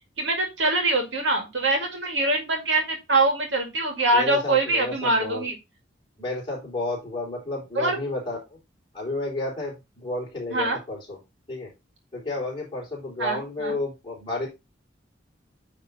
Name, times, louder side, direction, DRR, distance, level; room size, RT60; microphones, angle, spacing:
voice 1, 0.2-5.5 7.8-8.0 10.5-10.8 13.2-13.8, right 2 dB, 85° right, 2 dB, 2.1 m, -24 dB
voice 2, 4.1-5.4 6.2-8.6 8.9-11.2 11.5-11.7 12.1-14.5, left 2 dB, 25° left, -5 dB, 3.8 m, -31 dB
9.3 x 3.5 x 4.1 m, 0.24 s
head